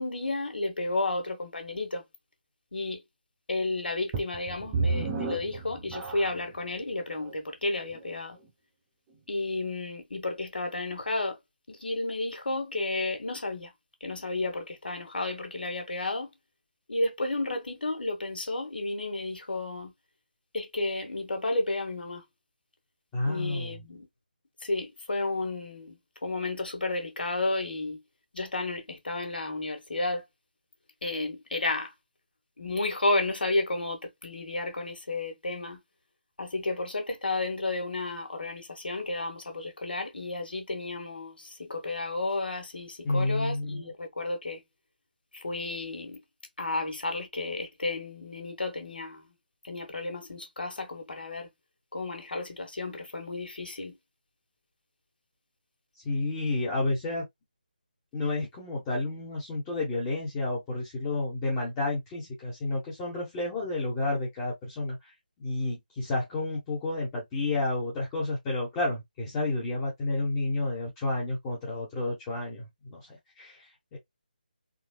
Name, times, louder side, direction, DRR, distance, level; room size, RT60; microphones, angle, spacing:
voice 1, 0.0-2.0 2.7-3.0 3.5-8.4 9.3-11.4 11.7-13.7 14.0-16.3 16.9-19.9 20.5-22.2 23.2-24.1 24.6-28.0 28.3-30.2 31.0-31.9 32.6-35.8 36.4-44.6 45.3-46.2 46.6-49.3 49.6-51.5 51.9-54.0, left 2 dB, 80° left, 1.3 m, -32 dB
sound 1, 4.1-6.6 7.2-7.3 7.9-8.0, right 4 dB, 15° right, 0.8 m, -31 dB
voice 2, 23.1-23.7 43.0-43.9 56.0-57.2 58.1-65.0 65.4-74.0, left 2 dB, 15° left, 1.0 m, -30 dB
3.8 x 2.2 x 2.3 m
figure-of-eight pair, 165°, 5 cm